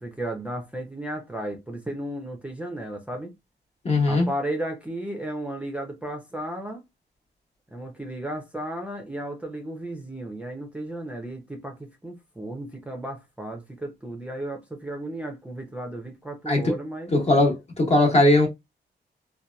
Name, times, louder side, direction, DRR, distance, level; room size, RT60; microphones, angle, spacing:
voice 1, 0.0-3.3 4.1-6.8 7.7-17.1, right 1 dB, 5° right, 0.6 m, -34 dB
voice 2, 3.8-4.3 16.5-16.7 17.1-18.5, left 2 dB, 35° left, 1.0 m, -19 dB
2.7 x 2.3 x 2.2 m
cardioid pair, 95°, 18 cm